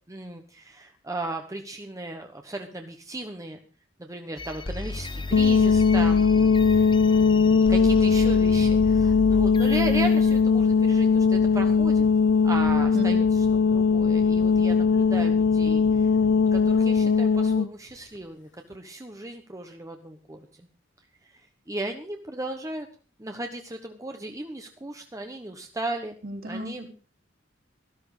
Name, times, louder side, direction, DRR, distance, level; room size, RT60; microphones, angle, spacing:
voice 1, 0.1-3.6 4.0-12.1 12.4-16.2 16.5-20.7 21.2-22.9 23.2-26.1 26.5-26.8, right 2 dB, 20° right, 4 dB, 1.1 m, -36 dB
sound 1, 4.4-10.4, left 2 dB, 25° left, 0.7 m, -34 dB
sound 2, 5.3-17.7, left 5 dB, 65° left, 0.6 m, -20 dB
voice 2, 12.9-13.3 26.2-26.9, equal, 55° right, 2 dB, 3.6 m, -34 dB
13.0 x 13.0 x 4.9 m, 0.37 s
head